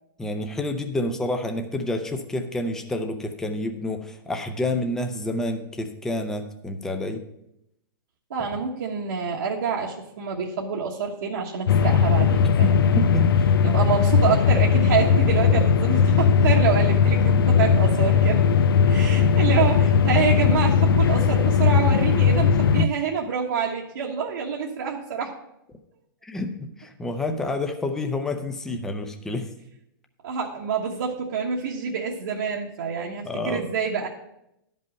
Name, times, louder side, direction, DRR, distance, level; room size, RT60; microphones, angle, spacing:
voice 1, 0.2-7.2 12.6-13.3 22.8-22.9 26.2-29.5 33.2-33.6, left 1 dB, 5° left, 5 dB, 0.5 m, -29 dB
voice 2, 8.3-12.9 13.6-18.4 18.9-25.3 30.2-34.1, right 6 dB, 70° right, -3 dB, 1.3 m, -27 dB
sound 1, 11.7-22.9, left 6 dB, 90° left, 0.4 m, -18 dB
11.5 x 5.5 x 5.2 m, 0.82 s
hypercardioid pair, 160°, 12 cm